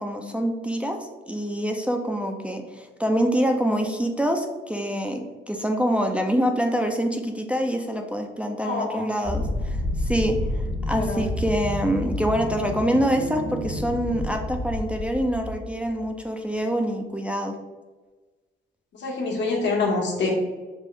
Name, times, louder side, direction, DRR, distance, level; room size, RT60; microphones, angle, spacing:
voice 1, 0.0-17.5, equal, 5° right, 3 dB, 0.4 m, -26 dB
voice 2, 8.6-9.1 11.0-11.2 18.9-20.3, left 3 dB, 65° left, -1 dB, 1.2 m, -26 dB
sound 1, 9.2-16.0, left 1 dB, 35° left, 1.0 m, -29 dB
5.4 x 2.5 x 3.1 m, 1.3 s
cardioid pair, 90°, 20 cm